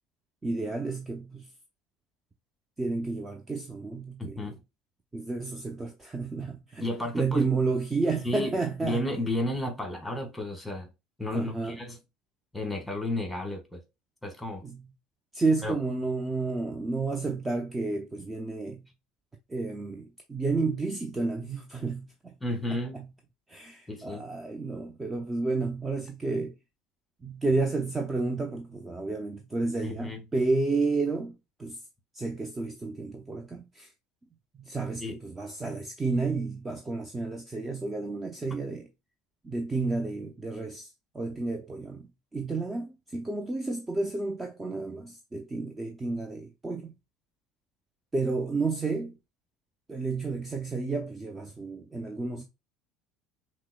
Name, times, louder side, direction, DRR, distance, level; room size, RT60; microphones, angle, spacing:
voice 1, 0.4-1.5 2.8-4.6 5.1-6.9 7.1-9.1 11.3-11.8 14.6-14.9 15.3-18.8 19.5-22.3 22.7-23.1 23.5-26.5 27.2-31.8 32.1-33.9 34.5-38.9 39.4-47.0 48.1-49.1 49.9-52.4, right 3 dB, 15° right, 0.5 m, -31 dB
voice 2, 6.8-7.5 8.2-10.9 11.2-12.0 12.5-13.8 14.2-14.6 15.6-15.8 22.4-23.0 23.9-24.2 29.8-30.2 35.0-35.2, left 1 dB, 5° left, 1.3 m, -32 dB
5.7 x 2.0 x 2.2 m
figure-of-eight pair, 65°, 0 cm